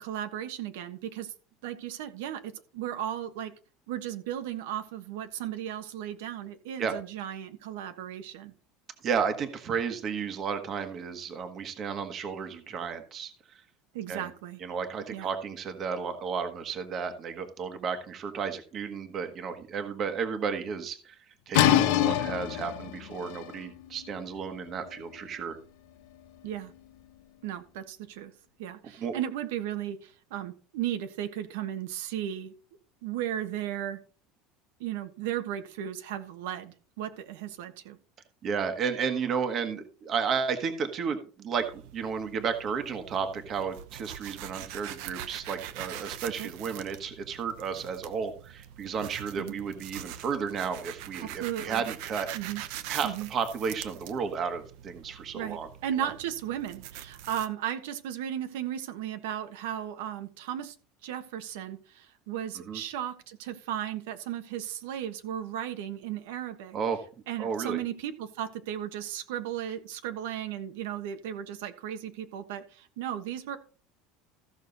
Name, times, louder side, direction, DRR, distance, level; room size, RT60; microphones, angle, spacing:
voice 1, 0.0-1.3 1.6-3.5 3.9-8.5 13.9-14.6 15.1-15.3 26.4-26.7 27.4-28.3 28.6-32.5 33.0-34.0 34.8-38.0 46.4-46.5 49.4-49.6 51.2-51.8 52.3-52.6 53.0-53.3 55.3-60.7 61.0-66.8 67.3-73.6, right 10 dB, 85° right, 8 dB, 1.3 m, -35 dB
voice 2, 9.0-13.6 14.1-14.3 14.6-21.2 21.5-25.6 29.0-29.1 38.4-52.3 52.9-55.7 56.0-56.1 62.7-62.8 66.7-67.0 67.4-67.8, right 6 dB, 25° right, 8 dB, 1.3 m, -33 dB
sound 1, 21.5-27.2, left 11 dB, 75° left, 1.2 m, -28 dB
sound 2, 41.5-57.5, right 12 dB, 60° right, 0.9 m, -43 dB
14.5 x 6.4 x 4.0 m, 0.38 s
cardioid pair, 175°, 0 cm